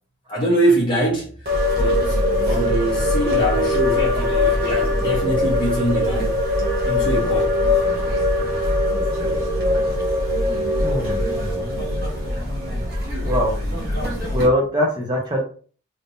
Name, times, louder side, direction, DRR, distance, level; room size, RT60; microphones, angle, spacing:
voice 1, 0.3-1.5 1.8-2.2 2.4-6.5 6.8-7.6, right 1 dB, 20° left, 1.4 m, -23 dB
sound 1, 1.5-14.5, left 1 dB, 50° right, 1.1 m, -21 dB
voice 2, 10.8-11.2 13.2-13.6 14.3-15.4, equal, 20° right, 0.9 m, -21 dB
3.5 x 2.8 x 2.6 m
head